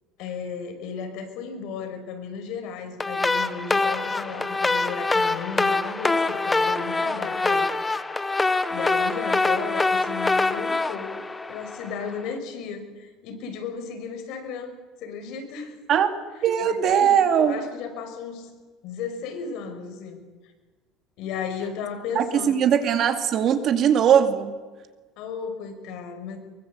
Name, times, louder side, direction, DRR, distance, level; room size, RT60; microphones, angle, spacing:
voice 1, 0.2-8.0 8.7-14.7 15.0-15.8 16.6-18.5 18.8-20.2 21.2-22.6 25.2-26.4, left 6 dB, 60° left, 5 dB, 5.8 m, -35 dB
sound 1, 3.0-12.1, left 3 dB, 10° left, 0.9 m, -24 dB
voice 2, 16.4-17.7 22.1-24.5, right 8 dB, 40° right, 7 dB, 2.2 m, -20 dB
24.0 x 23.5 x 8.1 m, 1.3 s
cardioid pair, 160°, 0 cm